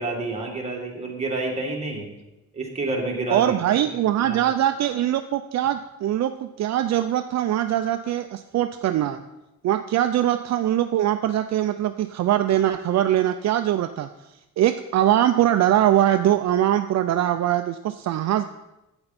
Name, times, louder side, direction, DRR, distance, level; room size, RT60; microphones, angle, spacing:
voice 1, 0.0-2.1 2.5-3.9 4.2-4.6, right 2 dB, 20° right, -1 dB, 2.0 m, -29 dB
voice 2, 3.3-9.2 9.6-14.1 14.6-18.4, right 12 dB, 65° right, 8 dB, 0.5 m, -22 dB
12.5 x 8.8 x 4.2 m, 0.97 s
wide cardioid pair, 175°, 30 cm